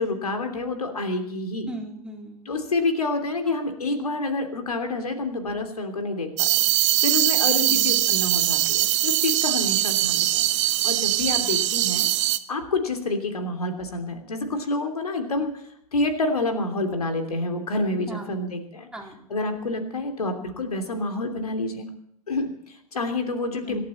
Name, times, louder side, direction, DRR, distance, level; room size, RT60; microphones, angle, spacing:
voice 1, 0.0-1.7 2.4-6.3 6.6-10.4 10.8-12.1 12.5-15.6 15.9-18.9 19.3-21.9 22.3-23.8, left 2 dB, 80° left, 5 dB, 3.1 m, -28 dB
voice 2, 1.7-2.5 7.7-7.9 18.1-18.5 18.9-19.3 23.7-23.8, right 1 dB, 5° right, 0 dB, 3.6 m, -38 dB
sound 1, 6.4-12.4, right 15 dB, 55° right, 1.2 m, -22 dB
27.0 x 11.5 x 4.3 m, 0.70 s
figure-of-eight pair, 100°, 19 cm